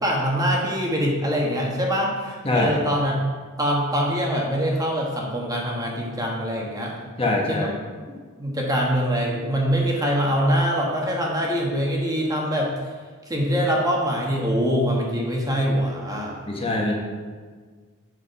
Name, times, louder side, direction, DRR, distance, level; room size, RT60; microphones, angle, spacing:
voice 1, 0.0-3.1 3.6-6.9 7.5-7.7 8.4-12.7 13.3-16.5, equal, 15° right, -2 dB, 1.3 m, -24 dB
voice 2, 7.2-7.7 16.5-16.9, left 2 dB, 25° left, -1 dB, 1.4 m, -23 dB
8.1 x 5.9 x 5.7 m, 1.5 s
head